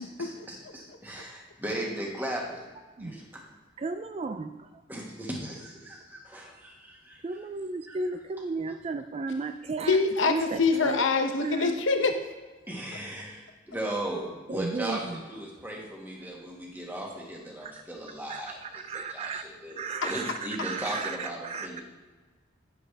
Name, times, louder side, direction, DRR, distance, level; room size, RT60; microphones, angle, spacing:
voice 1, 0.0-2.7 3.0-3.5 4.9-7.5 7.9-8.2 12.7-21.8, right 1 dB, 10° right, -2 dB, 1.6 m, -37 dB
voice 2, 3.8-4.5 7.2-10.0 10.3-11.0 11.4-11.8 14.5-15.0 18.3-19.4 19.8-21.8, right 4 dB, 30° right, 9 dB, 0.3 m, -34 dB
voice 3, 9.8-12.2, left 4 dB, 80° left, 5 dB, 0.8 m, -25 dB
10.0 x 7.8 x 3.4 m, 1.3 s
head